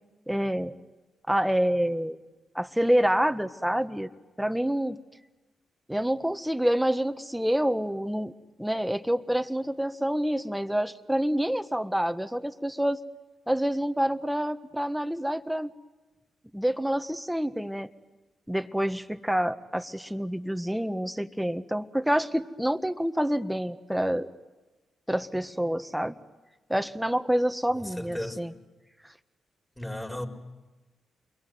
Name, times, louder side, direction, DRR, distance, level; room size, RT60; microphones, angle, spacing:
voice 1, 0.3-0.7 1.3-2.2 2.5-4.1 4.4-5.0 5.9-8.3 8.6-13.0 13.5-15.7 16.5-17.9 18.5-24.3 25.1-26.1 26.7-28.5, equal, 5° right, 1.5 m, -27 dB
voice 2, 27.7-28.6 29.8-30.3, left 1 dB, 15° left, 4.5 m, -36 dB
28.0 x 22.5 x 9.5 m
hypercardioid pair, 45°, 0 cm